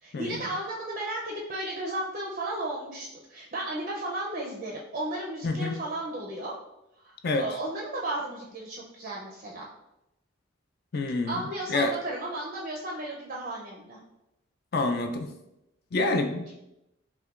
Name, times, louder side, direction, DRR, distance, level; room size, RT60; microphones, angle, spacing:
voice 1, 0.0-6.5 7.0-9.6 11.3-14.0, right 1 dB, 35° right, -3 dB, 0.4 m, -34 dB
voice 2, 5.4-5.8 7.2-7.4 10.9-11.4 11.7-11.9 14.7-15.3 15.9-16.5, left 2 dB, 50° left, 6 dB, 0.4 m, -27 dB
5.7 x 2.1 x 2.3 m, 0.88 s
head